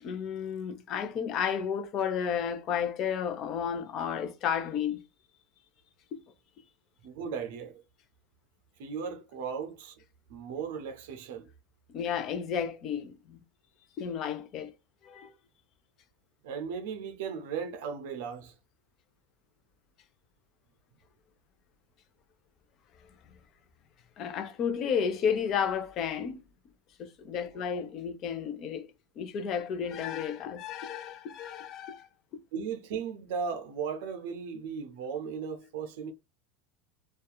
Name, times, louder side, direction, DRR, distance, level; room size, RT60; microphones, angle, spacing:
voice 1, 0.0-5.0 11.9-13.4 14.0-14.7 15.0-15.3 24.2-26.4 27.0-28.9 29.2-32.1, left 7 dB, 45° left, 0.5 m, -32 dB
voice 2, 7.0-7.8 8.8-10.0 10.3-11.5 16.4-18.6 27.5-27.7 32.5-36.1, right 6 dB, 70° right, 0.4 m, -36 dB
2.7 x 2.3 x 2.2 m
hypercardioid pair, 95°, 0 cm